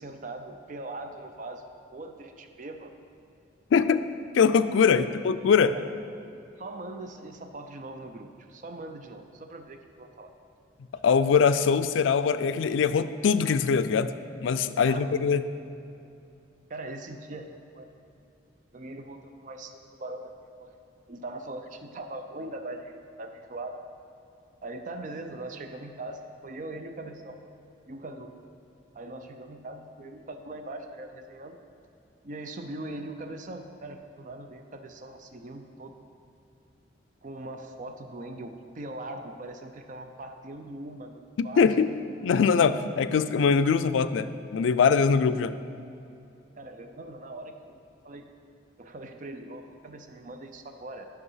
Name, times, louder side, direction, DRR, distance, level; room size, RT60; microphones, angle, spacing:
voice 1, 0.0-1.6 1.9-2.9 4.9-5.1 5.7-5.9 6.6-10.3 14.8-15.0 16.7-17.9 18.7-20.7 21.1-23.8 24.6-27.4 27.9-28.3 28.9-31.6 32.2-36.0 37.2-41.7 46.6-47.8 48.0-48.3 48.8-51.1, right 2 dB, 45° right, 6 dB, 0.5 m, -41 dB
voice 2, 3.7-4.1 4.3-5.8 11.0-14.1 14.4-15.4 41.4-41.9 42.2-45.5, left 6 dB, 85° left, 12 dB, 0.3 m, -22 dB
8.0 x 5.9 x 5.6 m, 2.7 s
head